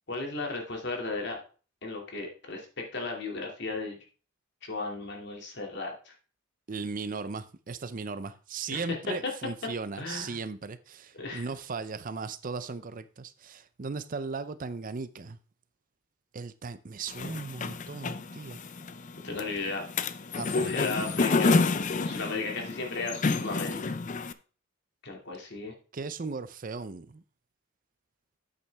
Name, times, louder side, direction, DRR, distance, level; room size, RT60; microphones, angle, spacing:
voice 1, 0.1-1.4 1.8-4.0 4.6-6.1 8.7-9.0 10.0-10.4 11.1-11.5 19.2-19.8 20.5-21.6 22.0-23.8 25.0-25.7, left 3 dB, 55° left, 2.5 m, -35 dB
voice 2, 6.7-15.4 16.3-18.6 20.3-20.7 25.9-27.2, right 4 dB, 40° right, 0.5 m, -37 dB
sound 1, 17.1-24.3, left 3 dB, 35° left, 0.5 m, -29 dB
9.5 x 8.5 x 3.4 m
head